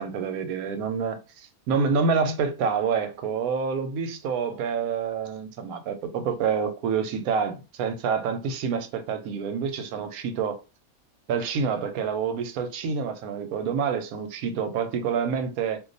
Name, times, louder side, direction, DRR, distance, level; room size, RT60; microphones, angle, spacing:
voice 1, 0.0-10.6 11.3-15.8, right 6 dB, 90° right, 1.1 m, -27 dB
2.4 x 2.3 x 3.9 m
omnidirectional pair, 1.5 m